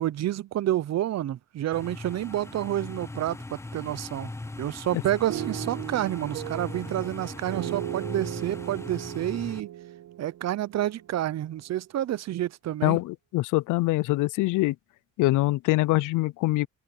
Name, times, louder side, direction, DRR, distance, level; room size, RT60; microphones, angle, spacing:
voice 1, 0.0-4.3 4.6-9.7 10.2-13.0, right 13 dB, 60° right, 0.7 m, -29 dB
sound 1, 1.7-9.6, left 2 dB, 10° left, 0.6 m, -39 dB
sound 2, 5.3-11.3, right 12 dB, 75° right, 1.3 m, -37 dB
voice 2, 12.8-14.7 15.2-16.7, left 19 dB, 90° left, 0.5 m, -24 dB
cardioid pair, 90°, 30 cm